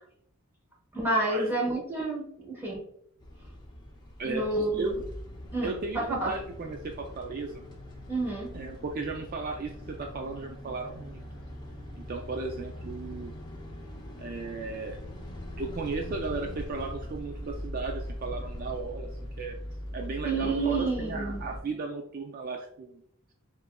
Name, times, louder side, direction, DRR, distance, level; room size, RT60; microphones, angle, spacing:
voice 1, 0.9-2.8 4.3-4.9 5.5-6.3 8.1-8.5 20.2-21.4, right 2 dB, 10° right, -3 dB, 1.1 m, -29 dB
sound 1, 3.2-21.6, equal, 20° left, 0.6 m, -41 dB
voice 2, 4.2-5.0 5.6-7.6 8.5-11.2 12.0-13.3 14.2-15.0 15.6-19.6 19.9-23.0, right 3 dB, 40° right, 2 dB, 0.3 m, -35 dB
6.1 x 2.5 x 2.2 m, 0.70 s
head